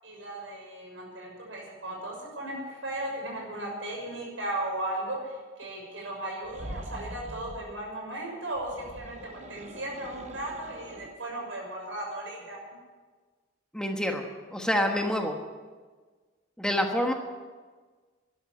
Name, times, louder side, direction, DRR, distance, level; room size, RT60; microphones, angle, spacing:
voice 1, 0.0-12.6, right 1 dB, 80° right, -1 dB, 6.3 m, -36 dB
sound 1, 6.4-7.7 8.5-11.2, right 1 dB, 35° right, 0.9 m, -43 dB
voice 2, 13.7-14.2 14.5-15.4 16.6-17.1, left 1 dB, 5° left, 2 dB, 1.3 m, -27 dB
13.0 x 11.0 x 9.9 m, 1.4 s
head